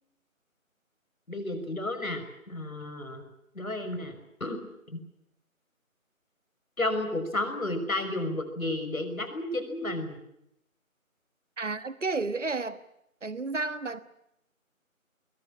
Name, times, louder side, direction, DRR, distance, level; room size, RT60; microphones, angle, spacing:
voice 1, 1.3-3.3 3.5-4.6 4.9-5.0 6.8-10.2, left 2 dB, 75° left, 7 dB, 5.8 m, -32 dB
voice 2, 11.6-12.8 13.2-14.0, right 3 dB, 60° right, 14 dB, 1.3 m, -31 dB
22.0 x 18.5 x 10.0 m, 0.79 s
figure-of-eight pair, 180°, 42 cm